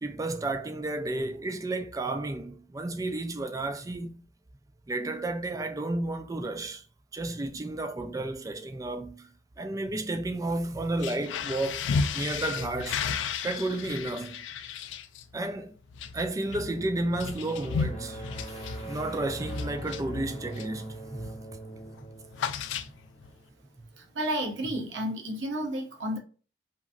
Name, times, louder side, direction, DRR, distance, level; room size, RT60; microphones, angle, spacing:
voice 1, 0.0-4.2 4.9-6.8 7.1-9.3 9.6-13.0 13.4-14.5 15.3-15.7 16.1-18.6 18.8-21.4, right 2 dB, 20° right, 0.3 m, -32 dB
sound 1, 10.9-20.8 21.2-21.5 21.7-23.3, left 5 dB, 80° left, 0.3 m, -34 dB
sound 2, 16.7-23.4, right 2 dB, 35° left, 0.8 m, -43 dB
voice 2, 24.0-26.2, right 1 dB, 80° right, 0.8 m, -31 dB
2.9 x 2.5 x 2.4 m
head